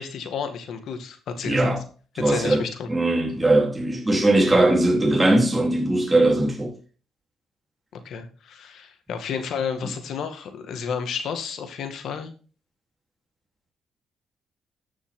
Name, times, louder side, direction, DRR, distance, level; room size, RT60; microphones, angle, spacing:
voice 1, 0.0-1.7 2.3-2.9 8.0-12.3, left 6 dB, 70° left, 2.0 m, -31 dB
voice 2, 1.4-1.8 2.2-6.7 9.8-9.9, right 2 dB, 10° right, 3.7 m, -20 dB
13.5 x 6.2 x 3.9 m
cardioid pair, 90°, 0 cm